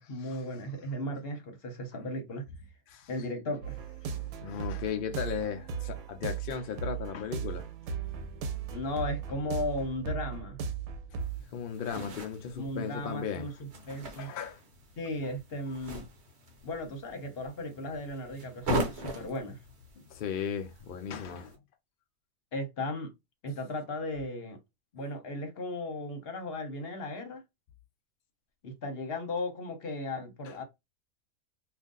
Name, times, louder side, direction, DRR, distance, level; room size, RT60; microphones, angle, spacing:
voice 1, 0.0-2.5 3.1-3.8 8.7-10.6 12.5-14.3 15.0-16.1 16.6-19.6 22.5-23.1 23.4-24.6 24.9-27.4 28.6-30.6, left 1 dB, 45° left, 1.0 m, -36 dB
sound 1, 3.6-11.4, right 6 dB, 80° right, 1.1 m, -37 dB
voice 2, 4.1-7.7 11.1-11.2 11.5-13.5 14.2-14.6 20.0-21.6 30.4-30.6, left 7 dB, 70° left, 0.5 m, -36 dB
sound 2, 11.2-21.6, right 1 dB, 55° right, 1.1 m, -40 dB
2.6 x 2.6 x 3.7 m
omnidirectional pair, 1.5 m